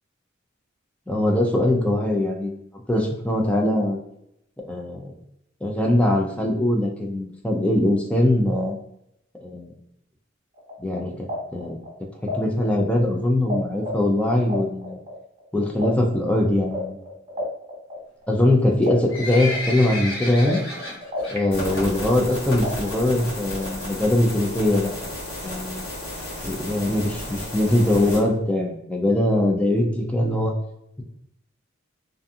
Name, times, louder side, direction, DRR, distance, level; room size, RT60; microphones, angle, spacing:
voice 1, 1.1-2.5 2.9-4.0 4.6-5.1 5.6-8.8 9.4-9.7 10.8-11.3 11.5-11.8 12.3-15.0 15.5-17.0 17.4-17.5 18.3-20.6 21.3-25.1 25.4-25.9 26.4-30.5, left 1 dB, 5° left, 0 dB, 0.4 m, -22 dB
sound 1, 10.6-13.6 13.8-18.5 18.9-21.4 21.6-23.3, left 1 dB, 35° right, 0.7 m, -33 dB
Livestock farm animals working animals, 18.7-21.4 21.7-22.0 22.3-22.4 23.1-23.2 23.5-23.6 23.8-23.9 24.4-24.7 25.2-25.3 25.6-25.7 25.8-25.9 26.1-26.2 26.7-26.8 27.3-27.4 27.8-27.9, left 2 dB, 80° left, 0.8 m, -32 dB
sound 2, 21.5-28.2, left 1 dB, 55° left, 1.3 m, -33 dB
2.6 x 2.5 x 2.3 m, 0.79 s
head